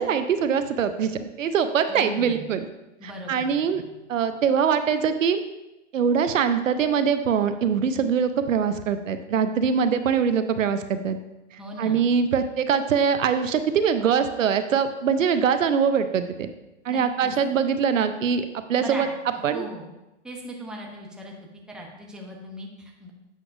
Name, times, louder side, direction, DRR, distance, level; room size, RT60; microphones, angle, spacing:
voice 1, 0.0-2.7 3.3-3.8 4.1-5.4 5.9-11.2 11.8-16.5 16.8-19.1 19.4-19.6, right 7 dB, 85° right, 10 dB, 0.7 m, -23 dB
voice 2, 1.9-2.5 3.0-3.9 11.6-12.1 16.9-17.3 18.8-19.1 19.3-19.9 20.2-21.3 21.7-23.1, equal, ahead, -1 dB, 0.7 m, -39 dB
8.2 x 5.9 x 2.6 m, 0.96 s
hypercardioid pair, 135°, 38 cm